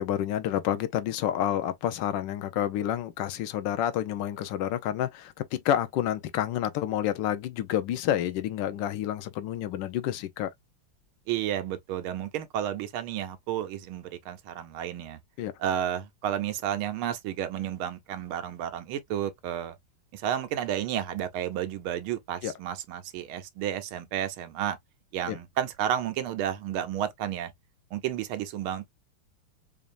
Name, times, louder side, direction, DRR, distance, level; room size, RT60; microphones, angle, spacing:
voice 1, 0.0-10.5 15.4-15.5 22.4-22.5 25.3-25.4, left 11 dB, 70° left, 1.2 m, -29 dB
voice 2, 11.3-15.2 15.6-19.7 20.1-24.8 25.1-27.5 27.9-28.9, right 10 dB, 75° right, 1.5 m, -31 dB
5.2 x 2.6 x 2.5 m
omnidirectional pair, 2.4 m